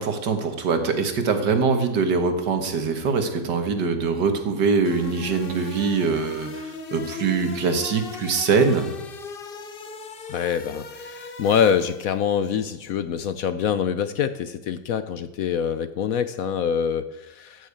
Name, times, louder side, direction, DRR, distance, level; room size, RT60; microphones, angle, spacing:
voice 1, 0.0-8.9, right 5 dB, 75° right, 7 dB, 2.0 m, -23 dB
sound 1, 4.8-12.3, left 5 dB, 40° left, 0.9 m, -38 dB
voice 2, 10.3-17.7, left 8 dB, 65° left, 12 dB, 1.0 m, -25 dB
14.5 x 6.5 x 8.3 m, 1.0 s
omnidirectional pair, 1.8 m